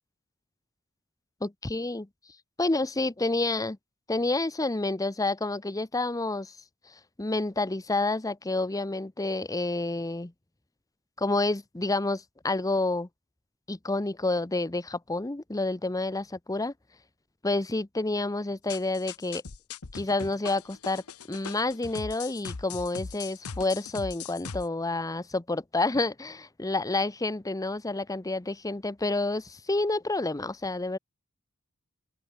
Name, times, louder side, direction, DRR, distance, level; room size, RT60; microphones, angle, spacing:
voice 1, 1.4-2.1 2.6-3.8 4.1-6.5 7.2-10.3 11.2-13.1 13.7-16.7 17.4-19.4 19.9-21.0 21.3-31.0, left 2 dB, 15° left, 0.7 m, -29 dB
sound 1, 18.7-24.7, left 5 dB, 75° left, 1.0 m, -40 dB
open air
head